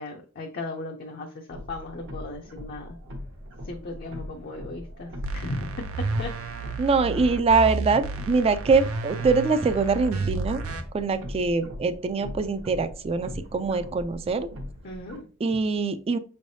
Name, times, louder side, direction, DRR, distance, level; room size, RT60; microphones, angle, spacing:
voice 1, 0.0-3.0 3.6-5.7 6.2-6.3 14.8-15.3, left 2 dB, 50° left, 1 dB, 0.5 m, -36 dB
sound 1, 1.5-15.2, left 1 dB, 60° right, 0.9 m, -41 dB
sound 2, 5.2-10.8, right 3 dB, 90° right, 0.6 m, -32 dB
voice 2, 6.8-10.6 10.9-14.5 15.4-16.2, right 4 dB, 30° right, 11 dB, 0.3 m, -23 dB
5.3 x 3.3 x 2.7 m, 0.39 s
head